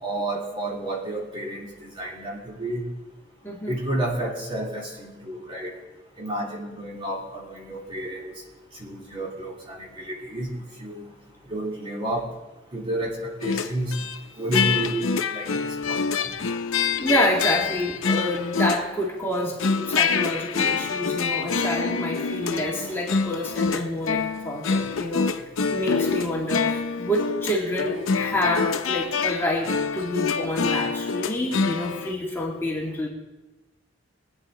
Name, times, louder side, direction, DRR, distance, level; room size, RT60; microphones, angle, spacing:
voice 1, 0.0-2.8 3.7-5.7 6.2-8.3 8.8-10.5 10.8-11.1 11.5-12.3 12.7-13.9 14.4-15.0 15.3-15.5 15.9-16.2, right 1 dB, 25° right, -2 dB, 2.5 m, -30 dB
voice 2, 3.4-3.8 17.0-25.4 25.7-33.1, left 1 dB, 10° left, -4 dB, 2.2 m, -28 dB
sound 1, 13.4-14.2 14.5-19.0 19.3-32.1, left 5 dB, 90° left, 0.7 m, -26 dB
22.5 x 9.9 x 3.8 m, 1.1 s
head